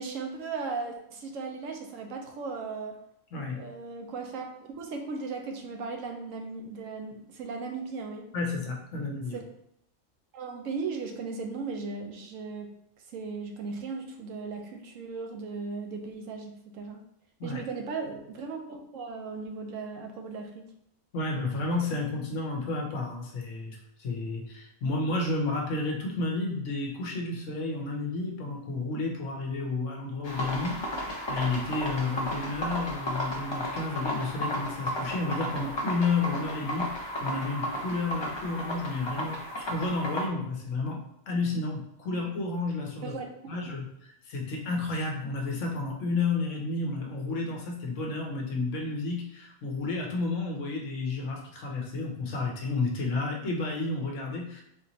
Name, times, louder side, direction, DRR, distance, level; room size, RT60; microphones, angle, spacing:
voice 1, 0.0-3.0 3.5-8.3 9.3-9.4 10.3-12.7 13.1-17.0 17.4-20.6 43.0-43.6, right 4 dB, 85° right, 3 dB, 1.0 m, -37 dB
voice 2, 3.3-3.6 8.3-9.4 17.4-17.6 21.1-41.0 41.3-43.2 43.5-54.6, left 3 dB, 70° left, 1 dB, 1.1 m, -31 dB
sound 1, 30.2-40.3, equal, 45° left, 0.3 m, -34 dB
4.2 x 2.9 x 2.7 m, 0.77 s
omnidirectional pair, 1.3 m